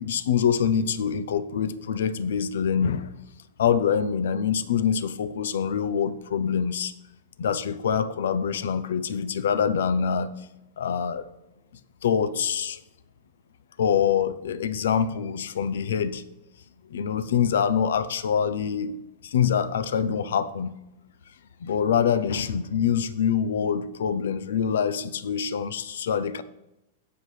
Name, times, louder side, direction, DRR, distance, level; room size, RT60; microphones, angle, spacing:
voice 1, 0.0-3.1 3.6-6.9 7.4-10.3 10.8-11.3 12.0-12.8 13.8-16.2 16.9-19.0 19.2-20.8 21.6-26.4, left 7 dB, 80° left, 0.6 m, -25 dB
17.0 x 5.8 x 3.3 m
hypercardioid pair, 125°, 0 cm